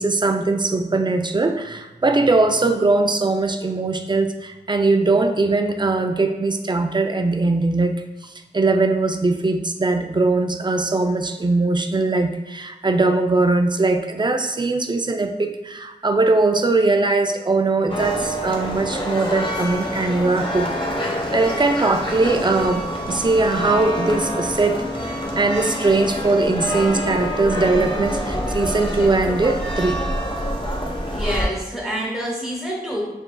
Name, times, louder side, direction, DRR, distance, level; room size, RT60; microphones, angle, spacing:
voice 1, 0.0-7.9 8.2-20.7 21.1-30.0, right 3 dB, 25° right, 6 dB, 0.4 m, -20 dB
sound 1, 17.9-31.5, equal, 30° left, 0.9 m, -26 dB
voice 2, 31.1-33.0, equal, 5° left, -5 dB, 1.0 m, -27 dB
6.7 x 2.6 x 2.2 m, 1.1 s
wide cardioid pair, 40°, 18 cm